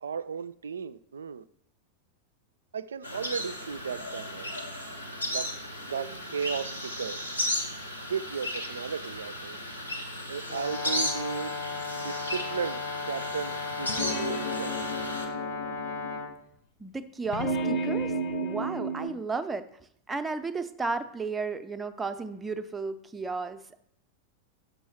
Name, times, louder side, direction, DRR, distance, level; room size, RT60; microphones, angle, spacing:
voice 1, 0.0-1.4 2.7-4.5 5.3-5.5 5.8-7.2 8.1-9.6 10.3-11.5 11.9-14.7, right 6 dB, 70° right, 0.3 m, -35 dB
sound 1, 3.0-15.3, left 1 dB, 85° left, 1.2 m, -35 dB
Brass instrument, 10.5-16.3, left 4 dB, 65° left, 1.1 m, -36 dB
sound 2, 13.9-16.3 17.3-19.1, right 1 dB, 40° left, 0.9 m, -32 dB
voice 2, 16.8-18.1 18.4-19.6 20.1-23.8, right 4 dB, 10° right, 0.5 m, -33 dB
6.5 x 6.2 x 4.5 m
figure-of-eight pair, 90°, 0 cm